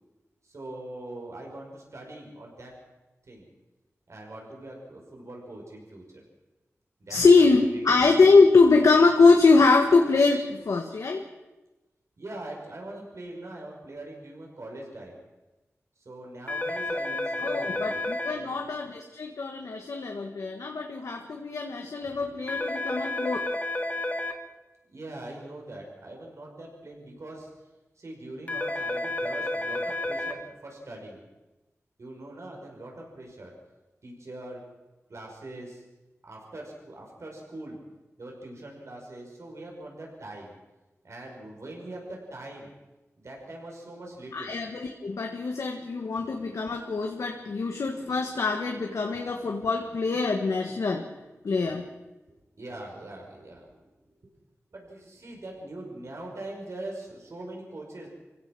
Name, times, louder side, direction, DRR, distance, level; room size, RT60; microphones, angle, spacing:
voice 1, 0.4-2.7 3.3-3.5 4.1-6.2 7.0-7.9 12.2-15.2 16.0-18.0 18.3-18.7 22.0-22.2 24.9-27.5 28.0-31.2 32.0-33.5 34.0-34.6 35.1-35.8 36.2-37.8 38.2-40.5 41.0-42.7 43.2-44.6 52.6-53.8 54.7-58.1, right 1 dB, 65° right, 0 dB, 5.9 m, -42 dB
voice 2, 7.1-11.2 17.4-23.4 44.3-51.1 51.4-51.9, left 4 dB, 90° left, 3 dB, 1.5 m, -23 dB
sound 1, 16.5-18.3 22.5-24.3 28.5-30.3, left 2 dB, 30° left, 2.3 m, -30 dB
26.0 x 16.5 x 6.2 m, 1.1 s
wide cardioid pair, 70°, 5 cm